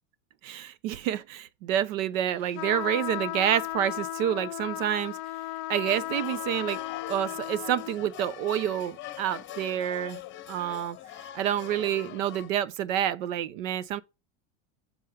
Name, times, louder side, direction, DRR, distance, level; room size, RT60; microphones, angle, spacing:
voice 1, 0.4-5.2 5.7-10.2 10.5-11.0 11.3-14.0, right 11 dB, 75° right, 0.9 m, -28 dB
sound 1, 2.5-8.0, left 18 dB, 45° left, 0.6 m, -35 dB
sound 2, 5.9-12.5, left 13 dB, 30° left, 0.9 m, -43 dB
7.7 x 4.2 x 5.1 m
supercardioid pair, 140°, 39 cm